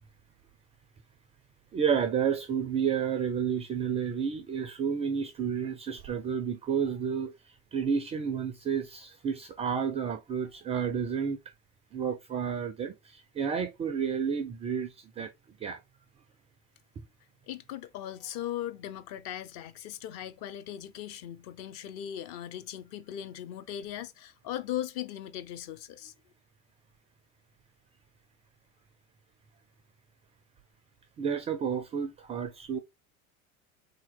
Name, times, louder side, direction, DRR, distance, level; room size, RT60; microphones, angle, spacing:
voice 1, 1.7-7.3 7.7-11.4 11.9-15.3 15.6-15.8 31.2-32.8, right 7 dB, 15° right, 0.3 m, -31 dB
voice 2, 17.5-26.1, left 11 dB, 45° left, 0.6 m, -38 dB
3.7 x 2.9 x 4.2 m
figure-of-eight pair, 80°, 43 cm